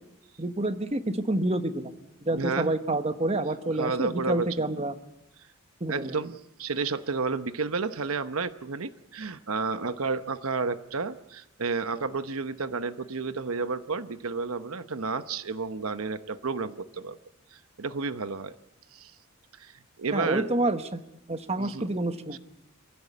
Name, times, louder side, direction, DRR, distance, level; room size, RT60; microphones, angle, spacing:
voice 1, 0.4-1.9 2.2-4.9 5.8-6.1 20.1-21.0 21.3-22.4, right 2 dB, 30° right, 8 dB, 1.2 m, -28 dB
voice 2, 2.3-2.7 3.8-4.5 5.9-17.2 17.5-18.6 18.9-19.1 19.6-20.5 21.6-21.9 22.3-22.4, right 4 dB, 85° right, 11 dB, 0.9 m, -31 dB
27.0 x 16.0 x 8.5 m, 0.85 s
head